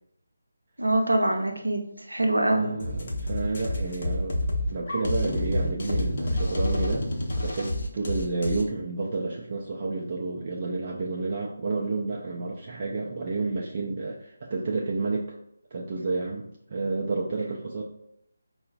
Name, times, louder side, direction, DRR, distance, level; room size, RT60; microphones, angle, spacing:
voice 1, 0.8-2.7, right 1 dB, 75° right, 2 dB, 0.6 m, -24 dB
voice 2, 2.5-7.1 7.4-15.3 15.7-17.8, right 3 dB, 35° right, -2 dB, 0.4 m, -30 dB
sound 1, 2.8-8.6, left 1 dB, 45° left, 0.6 m, -28 dB
4.6 x 2.1 x 2.5 m, 0.75 s
figure-of-eight pair, 155°, 0 cm